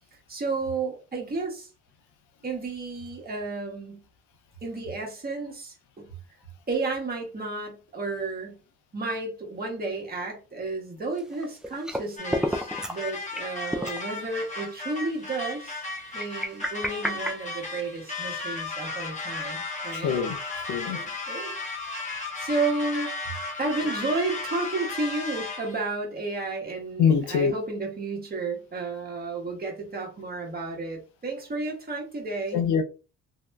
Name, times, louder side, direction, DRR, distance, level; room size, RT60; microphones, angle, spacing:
voice 1, 0.1-1.7 2.4-4.0 4.6-6.1 6.7-8.6 8.9-15.8 16.1-20.2 20.9-23.3 23.6-32.6, right 3 dB, 30° right, 1.4 m, -32 dB
sound 1, 11.2-12.0 12.3-13.0 13.3-13.4 13.7-14.0 14.6-14.7 16.0-18.0, equal, ahead, 0.4 m, -31 dB
sound 2, 12.2-25.8, left 3 dB, 25° left, 1.2 m, -35 dB
voice 2, 19.9-20.4 20.7-21.0 27.0-27.5 32.5-32.8, left 7 dB, 75° left, 0.6 m, -23 dB
3.0 x 2.8 x 2.3 m
cardioid pair, 90°, 30 cm